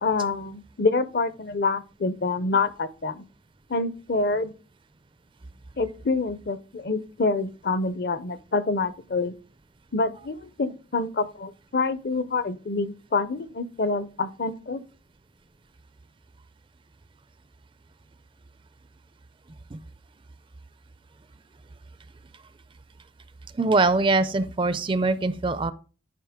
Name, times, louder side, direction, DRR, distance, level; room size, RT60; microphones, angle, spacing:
voice 1, 0.0-3.2 3.7-4.5 5.8-9.3 9.9-14.8, left 3 dB, 55° left, 0.6 m, -27 dB
voice 2, 23.5-25.7, right 3 dB, 25° right, 0.4 m, -23 dB
10.5 x 5.1 x 3.6 m
head